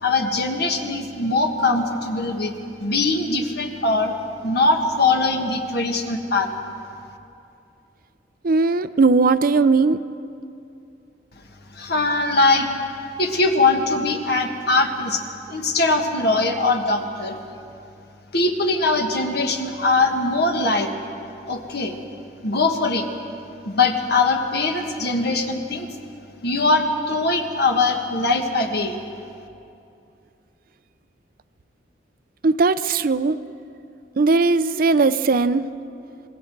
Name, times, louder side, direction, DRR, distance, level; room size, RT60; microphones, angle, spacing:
voice 1, 0.0-2.5 2.8-4.2 4.4-6.5 11.7-12.7 13.2-15.2 15.5-17.4 18.3-20.9 21.5-22.0 22.4-23.1 23.6-25.9 26.4-29.0, left 3 dB, 60° left, 4 dB, 1.6 m, -21 dB
voice 2, 8.4-10.0 32.4-33.4 34.2-35.7, right 3 dB, 55° right, 13 dB, 0.5 m, -18 dB
27.0 x 20.5 x 4.7 m, 2.6 s
head